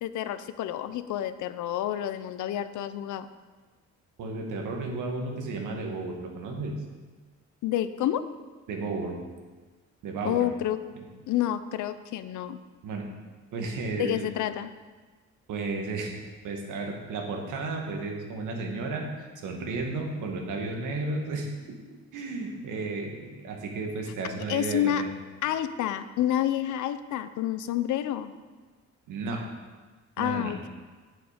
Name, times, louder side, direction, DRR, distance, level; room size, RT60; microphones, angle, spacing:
voice 1, 0.0-3.3 7.6-8.2 10.2-10.8 11.3-12.6 14.0-14.7 24.5-25.0 25.4-28.3 30.2-30.7, left 11 dB, 75° left, 12 dB, 0.7 m, -29 dB
voice 2, 4.2-6.7 8.7-9.2 10.0-10.5 11.0-11.1 12.8-13.1 13.5-14.3 15.5-16.1 16.4-21.5 22.1-25.1 29.1-29.4 30.2-30.5, right 3 dB, 80° right, 1 dB, 1.9 m, -33 dB
9.9 x 8.6 x 5.1 m, 1.4 s
cardioid pair, 175°, 30 cm